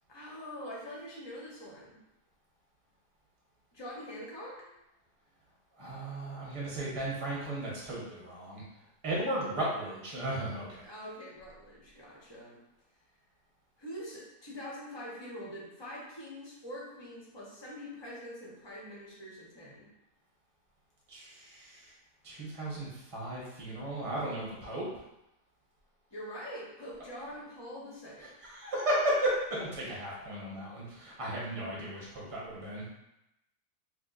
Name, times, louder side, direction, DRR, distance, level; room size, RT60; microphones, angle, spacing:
voice 1, 0.1-2.0 3.7-4.7 10.8-12.6 13.8-19.9 26.1-28.3, equal, 40° left, -5 dB, 0.4 m, -44 dB
voice 2, 5.8-8.6 9.0-10.8 21.1-21.8 22.2-24.9 28.4-32.8, right 1 dB, 25° right, -5 dB, 0.8 m, -35 dB
2.9 x 2.3 x 3.8 m, 0.88 s
omnidirectional pair, 1.7 m